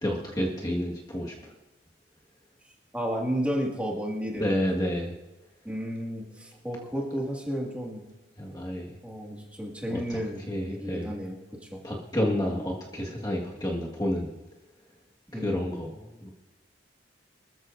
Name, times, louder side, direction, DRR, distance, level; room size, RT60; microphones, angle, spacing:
voice 1, 0.0-1.5 4.3-5.1 8.4-8.9 9.9-11.1 11.8-14.3 15.3-16.3, equal, 20° left, -3 dB, 1.6 m, -30 dB
voice 2, 2.9-4.5 5.6-8.0 9.0-11.8 15.3-15.6, equal, 5° right, -2 dB, 2.0 m, -32 dB
24.0 x 14.0 x 2.6 m, 1.1 s
head